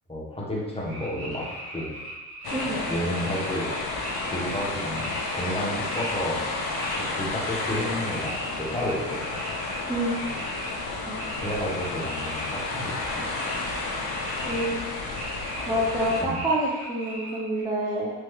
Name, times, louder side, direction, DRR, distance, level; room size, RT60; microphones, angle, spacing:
voice 1, 0.1-1.9 2.9-3.7 4.2-6.4 7.0-9.4 11.3-13.2 16.2-16.4, equal, 15° left, -5 dB, 0.9 m, -31 dB
sound 1, 0.8-6.1 6.4-7.0 7.4-14.6 14.9-17.6, right 1 dB, 55° right, 1.4 m, -39 dB
sound 2, 2.4-16.2, left 3 dB, 55° left, 0.6 m, -32 dB
voice 2, 9.9-10.2 11.1-11.2 14.5-14.8 15.7-18.1, right 1 dB, 10° right, -6 dB, 0.5 m, -27 dB
3.3 x 2.9 x 2.3 m, 1.2 s
supercardioid pair, 70°, 45 cm